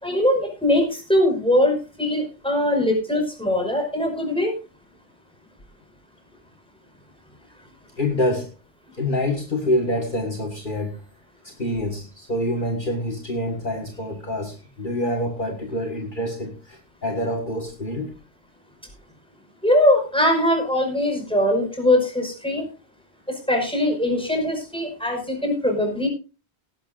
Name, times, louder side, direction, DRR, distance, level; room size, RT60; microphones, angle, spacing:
voice 1, 0.0-4.5 19.6-22.7 23.3-26.1, left 1 dB, 5° left, 2 dB, 5.2 m, -21 dB
voice 2, 8.0-8.5 9.0-11.0 11.4-18.2, left 1 dB, 50° left, 3 dB, 1.9 m, -26 dB
18.0 x 11.5 x 2.5 m, 0.31 s
omnidirectional pair, 1.1 m